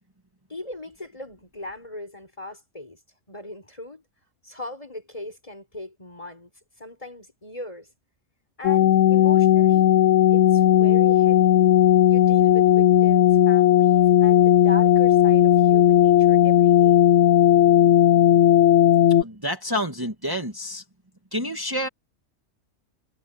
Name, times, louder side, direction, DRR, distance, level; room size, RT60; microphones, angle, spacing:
voice 1, 0.5-3.0 3.3-4.0 4.4-6.5 6.8-7.9 8.6-9.9 10.3-11.6 12.1-17.0, left 1 dB, 25° left, 4.7 m, -39 dB
sound 1, 8.6-19.2, left 11 dB, 70° left, 1.0 m, -16 dB
voice 2, 19.2-20.8 21.3-21.9, equal, 15° right, 2.3 m, -28 dB
omnidirectional pair, 1.3 m